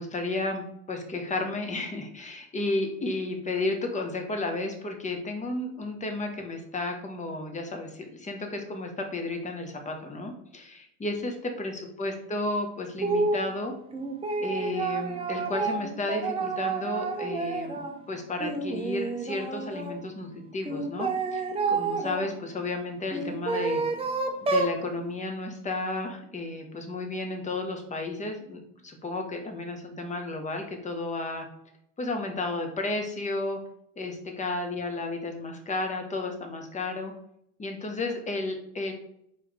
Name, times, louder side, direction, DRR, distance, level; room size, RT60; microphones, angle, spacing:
voice 1, 0.0-13.7 14.4-17.8 18.1-23.8 24.5-31.5 32.0-33.6 34.0-37.1 37.6-38.9, left 2 dB, 15° left, 3 dB, 0.9 m, -33 dB
sound 1, 13.0-13.4 13.9-18.0 18.4-19.9 20.6-22.3 23.1-24.8, right 3 dB, 15° right, 0.6 m, -29 dB
4.6 x 3.3 x 3.5 m, 0.73 s
hypercardioid pair, 95°, 44 cm